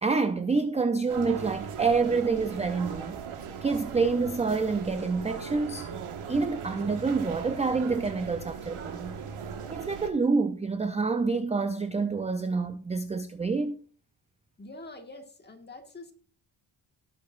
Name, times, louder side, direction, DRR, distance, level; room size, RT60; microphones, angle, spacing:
voice 1, 0.0-3.2 3.6-5.9 6.3-9.1 9.7-13.8, right 4 dB, 15° right, 0.3 m, -27 dB
sound 1, 1.1-10.1, right 7 dB, 80° right, 1.6 m, -39 dB
voice 2, 14.6-16.1, left 2 dB, 20° left, 1.6 m, -45 dB
17.5 x 6.5 x 2.4 m
wide cardioid pair, 150°, 50 cm